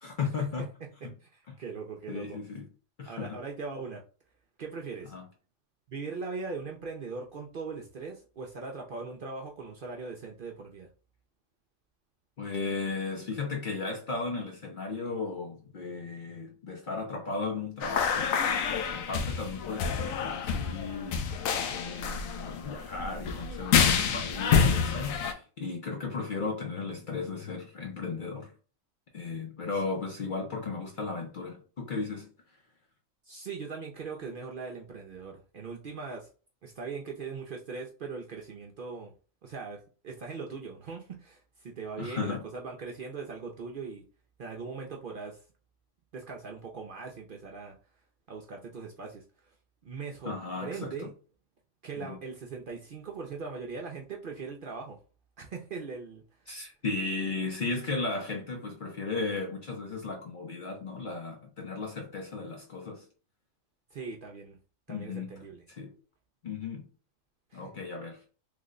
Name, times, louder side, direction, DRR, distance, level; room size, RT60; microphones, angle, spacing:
voice 1, 0.0-0.7 2.1-2.6 3.0-3.4 5.1-5.3 12.4-21.3 21.6-28.5 29.1-32.3 42.0-42.4 50.3-51.1 52.0-52.2 56.5-63.0 64.9-65.3 65.7-65.9 66.4-66.9 67.5-68.2, left 4 dB, 55° left, 0.6 m, -35 dB
voice 2, 1.2-2.4 3.1-4.0 4.6-5.1 5.9-10.9 33.3-36.3 36.6-39.1 39.4-44.0 44.4-45.4 46.1-47.8 48.3-49.5 49.8-51.1 51.8-55.0 55.4-56.2 63.9-64.6 64.9-65.6 67.5-67.7, right 4 dB, 55° right, 0.6 m, -40 dB
sound 1, 17.8-25.3, left 6 dB, 85° left, 1.0 m, -28 dB
3.3 x 2.1 x 3.6 m
omnidirectional pair, 1.4 m